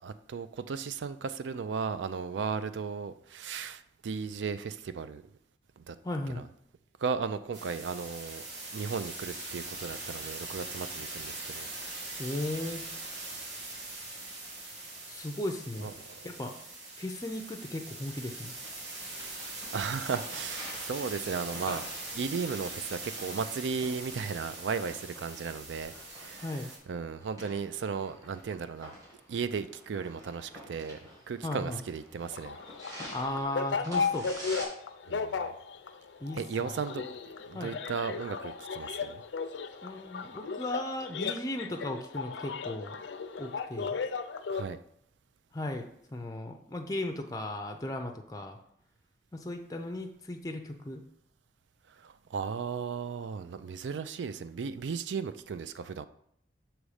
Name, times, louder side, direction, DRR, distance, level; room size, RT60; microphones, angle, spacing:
voice 1, 0.0-5.2 5.8-6.0 7.0-8.4 8.7-11.7 12.0-12.2 15.8-15.9 19.7-21.9 22.1-26.4 26.9-28.9 29.3-31.0 31.3-32.6 35.1-35.5 36.4-37.1 37.5-39.2 44.5-44.8 52.0-56.0, right 5 dB, 85° right, 12 dB, 0.4 m, -35 dB
voice 2, 6.0-6.4 12.2-12.8 15.1-15.9 16.2-16.5 17.0-18.5 26.4-26.7 31.4-31.8 33.1-34.3 36.2-36.7 37.5-37.8 39.8-43.0 43.4-44.0 45.5-48.6 49.3-51.0, left 1 dB, 20° left, 4 dB, 0.4 m, -36 dB
sound 1, 7.5-26.8, right 2 dB, 65° right, 1.6 m, -42 dB
sound 2, 18.6-34.7, equal, 20° right, 1.7 m, -48 dB
sound 3, 32.3-44.6, left 5 dB, 85° left, 0.4 m, -35 dB
6.4 x 3.1 x 4.9 m, 0.71 s
head